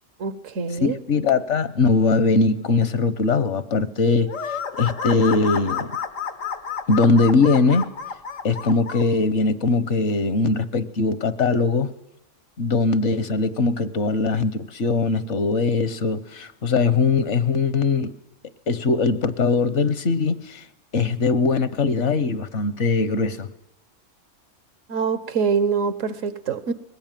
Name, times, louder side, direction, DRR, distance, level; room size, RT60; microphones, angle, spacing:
voice 1, 0.2-1.0 24.9-26.7, right 5 dB, 80° right, 1.5 m, -24 dB
voice 2, 0.8-4.3 4.8-6.0 6.9-7.9 8.4-11.9 12.6-18.1 18.7-20.6 20.9-23.5, left 4 dB, 65° left, 1.3 m, -21 dB
sound 1, 4.3-9.0, left 7 dB, 80° left, 1.6 m, -30 dB
21.5 x 19.0 x 9.1 m
omnidirectional pair, 1.3 m